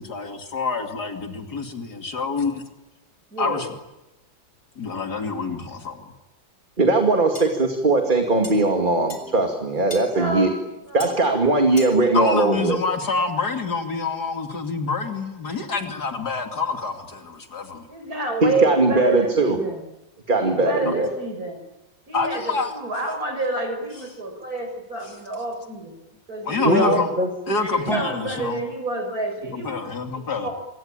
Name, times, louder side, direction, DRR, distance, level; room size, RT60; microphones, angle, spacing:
voice 1, 0.0-2.6 3.4-3.7 4.8-6.0 9.0-9.1 12.1-17.9 20.9-21.0 22.1-22.7 26.4-27.1 27.5-28.6 29.5-30.5, left 4 dB, 55° left, 5 dB, 3.2 m, -27 dB
voice 2, 3.3-3.6 7.0-7.3 10.1-10.5 10.8-11.2 17.9-19.8 20.4-21.6 22.1-25.9 26.3-27.1 27.6-30.5, right 2 dB, 45° right, 5 dB, 6.7 m, -28 dB
voice 3, 6.8-10.5 10.9-12.8 18.4-19.6 20.3-21.1 26.6-27.3 27.9-28.0, right 2 dB, 25° right, 4 dB, 2.4 m, -20 dB
sound 1, 7.4-7.5 8.4-8.5 9.1-9.2 9.9-10.1 11.0-11.1 11.8-12.0, left 2 dB, 35° left, 5.0 m, -35 dB
27.0 x 24.5 x 8.9 m, 0.97 s
omnidirectional pair, 2.1 m